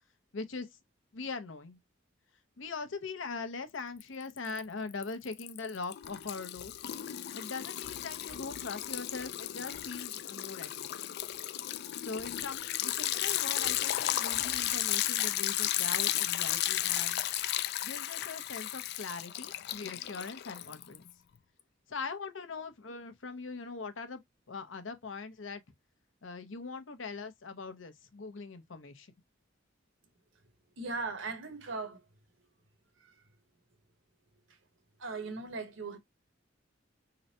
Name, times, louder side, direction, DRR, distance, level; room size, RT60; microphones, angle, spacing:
voice 1, 0.3-0.7 1.1-1.8 2.6-6.7 7.3-10.9 12.0-17.2 17.8-21.1 21.9-24.2 24.5-25.6 26.2-29.1, left 4 dB, 75° left, 0.8 m, -41 dB
Liquid, 4.0-4.6 4.9-21.1, left 13 dB, 55° left, 0.4 m, -34 dB
voice 2, 30.8-32.1 33.0-33.1 34.5-34.6 35.0-36.0, right 3 dB, 75° right, 1.2 m, -39 dB
3.9 x 3.2 x 2.7 m
head